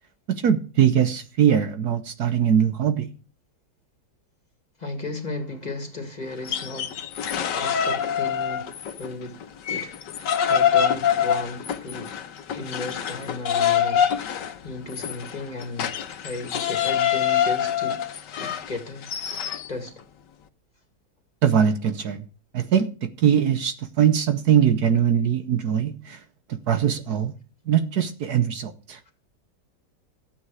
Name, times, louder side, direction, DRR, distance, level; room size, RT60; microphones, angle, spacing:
voice 1, 0.3-3.1 21.4-22.2 22.5-22.9 23.2-26.2 26.5-27.3 27.7-29.0, right 8 dB, 65° right, 1.4 m, -21 dB
voice 2, 4.8-7.1 7.5-12.2 12.5-18.0 18.4-19.1 19.7-20.0 29.1-29.2, left 2 dB, 25° left, 2.3 m, -35 dB
sound 1, 6.3-9.1 9.4-19.7, left 8 dB, 80° left, 1.6 m, -25 dB
12.5 x 8.7 x 4.8 m
omnidirectional pair, 1.9 m